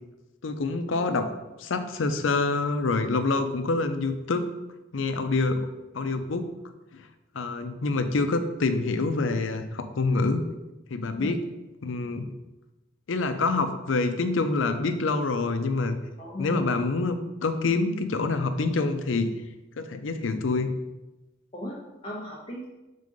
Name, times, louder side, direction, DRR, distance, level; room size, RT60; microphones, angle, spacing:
voice 1, 0.4-1.3 1.6-4.5 4.9-5.7 5.9-6.5 6.9-7.1 7.3-10.4 10.9-11.4 11.8-12.3 13.1-16.0 16.4-19.3 19.8-20.7, left 3 dB, 80° left, 9 dB, 0.6 m, -26 dB
voice 2, 16.2-16.7 21.5-22.6, left 1 dB, 30° left, -5 dB, 1.0 m, -36 dB
5.3 x 3.7 x 5.2 m, 1.1 s
head